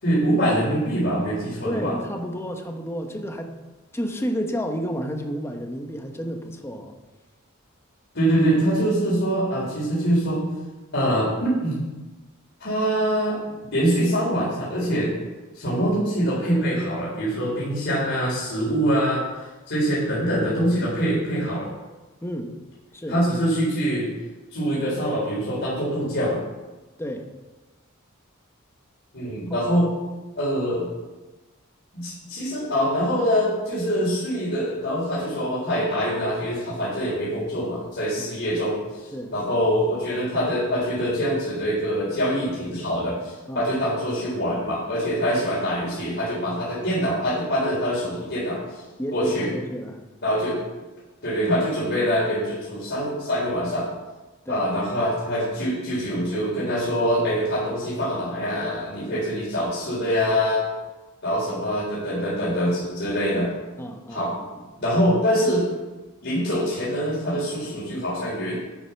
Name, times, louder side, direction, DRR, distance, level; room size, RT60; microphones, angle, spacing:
voice 1, 0.0-1.9 8.1-10.4 10.9-11.8 12.6-15.1 15.6-19.2 19.7-21.7 23.1-24.1 24.5-26.4 29.1-29.9 30.4-30.9 31.9-38.8 39.3-48.6 49.1-49.5 50.2-50.6 51.2-53.9 54.5-60.6 61.2-63.5 64.1-65.7 66.2-68.5, equal, 60° left, -7 dB, 4.1 m, -24 dB
voice 2, 1.6-3.5 3.9-6.9 22.2-22.5 22.9-23.2 27.0-27.3 29.5-29.8 38.2-38.3 39.1-39.3 43.5-43.7 49.0-50.0 54.5-54.6 63.8-64.2, equal, 15° left, 4 dB, 1.1 m, -31 dB
9.9 x 8.7 x 5.7 m, 1.1 s
head